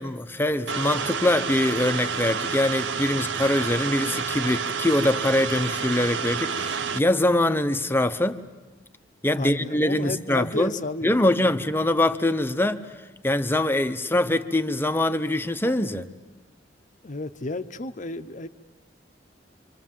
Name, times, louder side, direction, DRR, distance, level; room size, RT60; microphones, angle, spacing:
voice 1, 0.0-8.4 9.2-10.7 11.0-12.8 13.2-16.1, left 1 dB, 10° left, 9 dB, 0.9 m, -23 dB
sound 1, 0.7-7.0, right 6 dB, 80° right, 0.7 m, -29 dB
voice 2, 9.3-11.5 17.0-18.5, left 2 dB, 45° left, 10 dB, 0.8 m, -32 dB
27.0 x 25.5 x 7.5 m, 1.2 s
head